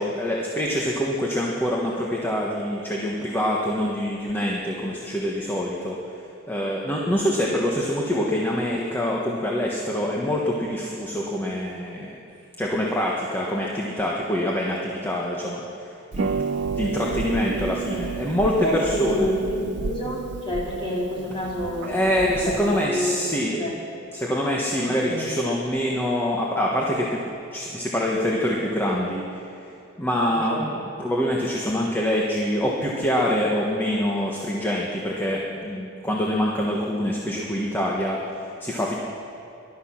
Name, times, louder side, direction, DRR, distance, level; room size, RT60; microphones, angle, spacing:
voice 1, 0.0-6.2 6.5-12.2 12.6-16.3 16.8-19.3 21.8-23.6 24.1-29.5 30.0-39.0, equal, 10° left, -3 dB, 1.3 m, -25 dB
Harp, 16.1-22.9, right 5 dB, 60° right, 0.5 m, -31 dB
voice 2, 18.4-23.1 23.5-23.7 24.8-25.3 30.5-30.8, equal, 25° left, -5 dB, 3.7 m, -28 dB
20.0 x 12.0 x 5.9 m, 2.8 s
head